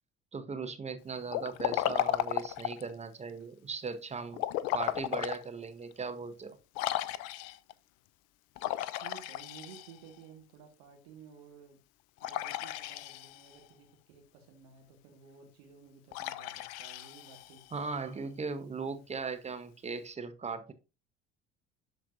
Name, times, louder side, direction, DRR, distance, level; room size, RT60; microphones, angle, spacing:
voice 1, 0.3-4.4 4.7-6.6 17.7-20.7, right 4 dB, 20° right, 0.9 m, -38 dB
Liquid, 1.3-2.9 4.3-5.4 5.9-6.0 6.7-7.7 8.6-10.2 12.2-13.6 16.1-17.8, left 14 dB, 50° left, 0.6 m, -34 dB
voice 2, 9.0-11.8 12.2-17.8, right 6 dB, 60° right, 1.6 m, -54 dB
12.0 x 4.4 x 2.6 m
figure-of-eight pair, 65°, 34 cm